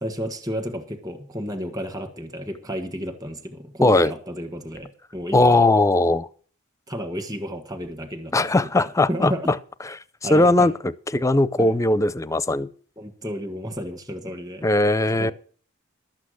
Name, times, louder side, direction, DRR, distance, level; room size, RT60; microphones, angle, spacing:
voice 1, 0.0-5.6 6.9-9.5 10.2-10.7 11.6-11.8 13.0-14.7 15.1-15.3, equal, 20° right, 1.5 m, -32 dB
voice 2, 3.8-4.1 5.3-6.3 8.3-9.6 9.9-10.0 10.3-12.7 14.6-15.3, left 2 dB, 15° left, 0.5 m, -19 dB
12.0 x 8.5 x 6.4 m
head